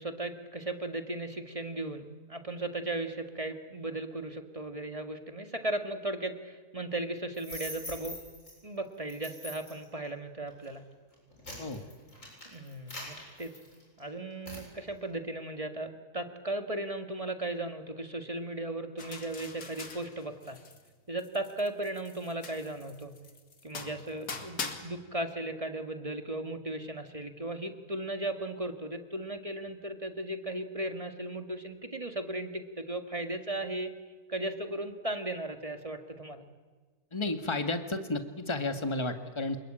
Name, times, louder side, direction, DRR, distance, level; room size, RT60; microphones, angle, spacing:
voice 1, 0.0-8.2 8.6-10.8 12.5-13.5 14.0-20.6 21.1-23.1 23.6-33.9 34.3-36.4, right 2 dB, 20° right, 6 dB, 1.9 m, -36 dB
sound 1, 7.3-8.5 9.1-9.8 10.5-10.7 11.1-14.0 14.5-14.7, left 1 dB, 55° left, 8.3 m, -43 dB
sound 2, 19.0-20.9 21.2-24.8, left 4 dB, 85° left, 2.7 m, -42 dB
voice 2, 37.1-39.6, left 2 dB, 20° left, 7 dB, 1.7 m, -32 dB
27.5 x 21.0 x 8.9 m, 1.4 s
omnidirectional pair, 1.6 m